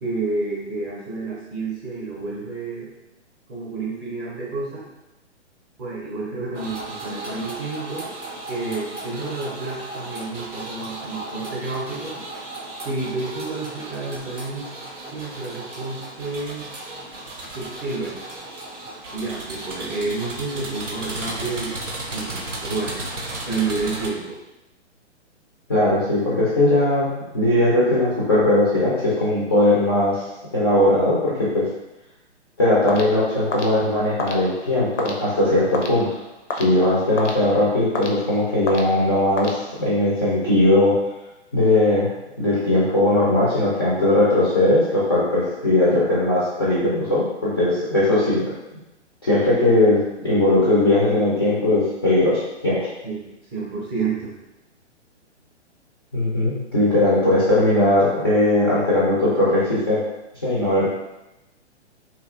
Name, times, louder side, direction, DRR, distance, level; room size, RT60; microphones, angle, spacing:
voice 1, 0.0-2.9 3.5-4.9 5.8-8.1 8.5-12.2 12.8-14.7 15.1-16.7 17.5-18.2 19.1-21.7 22.1-23.0 23.5-24.4 53.0-53.2 53.5-54.3, right 3 dB, 20° right, -5 dB, 0.6 m, -29 dB
sound 1, 6.5-24.1, right 2 dB, 90° right, 0.6 m, -35 dB
voice 2, 25.7-27.1 27.3-30.2 30.5-31.6 32.6-36.1 36.5-40.9 41.5-42.1 42.4-48.5 49.2-52.9 56.1-60.0 60.4-60.9, left 1 dB, 20° left, -9 dB, 0.3 m, -19 dB
sound 2, 32.9-40.1, left 2 dB, 85° left, 0.5 m, -33 dB
2.7 x 2.3 x 2.3 m, 0.97 s
figure-of-eight pair, 125°, 35 cm